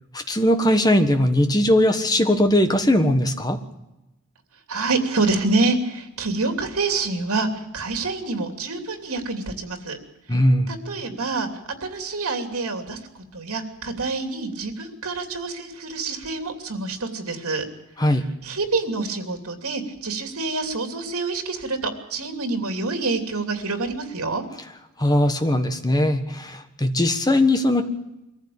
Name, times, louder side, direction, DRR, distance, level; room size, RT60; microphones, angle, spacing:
voice 1, 0.1-3.6 10.3-10.7 18.0-18.2 25.0-27.8, left 1 dB, 15° left, 7 dB, 1.4 m, -19 dB
voice 2, 4.7-10.0 10.3-10.4 10.7-11.5 11.8-13.0 13.3-17.7 18.4-24.4, right 3 dB, 80° right, 6 dB, 2.9 m, -27 dB
23.0 x 15.0 x 8.7 m, 0.96 s
head